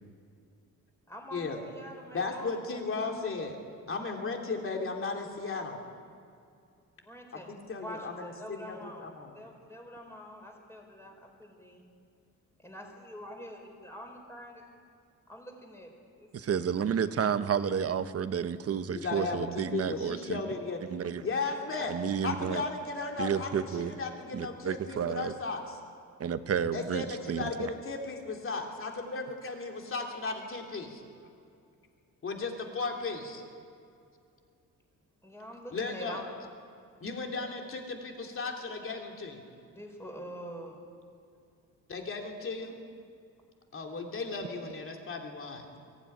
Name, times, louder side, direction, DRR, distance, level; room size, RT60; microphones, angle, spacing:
voice 1, 1.1-3.2 7.0-9.1 9.3-11.8 12.6-14.5 15.3-16.3 35.2-36.2 39.7-40.8, equal, 10° left, 1 dB, 4.6 m, -45 dB
voice 2, 2.1-3.6 3.9-5.8 7.5-9.4 18.9-20.8 21.2-22.0 22.2-25.8 26.7-31.0 32.2-33.4 35.7-36.2 37.0-39.4 41.9-42.7 43.7-45.7, left 4 dB, 40° left, 2 dB, 3.1 m, -35 dB
voice 3, 16.3-20.4 20.9-21.2 21.9-22.6 23.2-23.9 24.3-25.3 26.2-27.7, right 7 dB, 45° right, 10 dB, 1.0 m, -31 dB
22.5 x 16.5 x 10.0 m, 2.4 s
cardioid pair, 145°, 33 cm